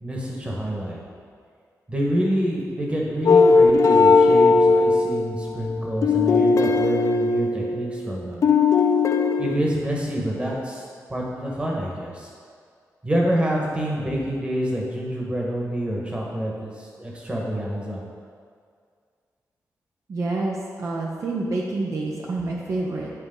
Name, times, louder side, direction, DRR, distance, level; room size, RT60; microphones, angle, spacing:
voice 1, 0.0-1.0 1.9-8.4 9.4-12.3 13.0-18.0, equal, 20° right, -3 dB, 1.4 m, -27 dB
sound 1, 3.3-8.1 8.4-9.6, left 4 dB, 55° left, 0.4 m, -18 dB
voice 2, 20.1-23.1, right 2 dB, 55° right, -3 dB, 0.8 m, -27 dB
10.5 x 4.7 x 3.8 m, 2.1 s
wide cardioid pair, 135°, 6 cm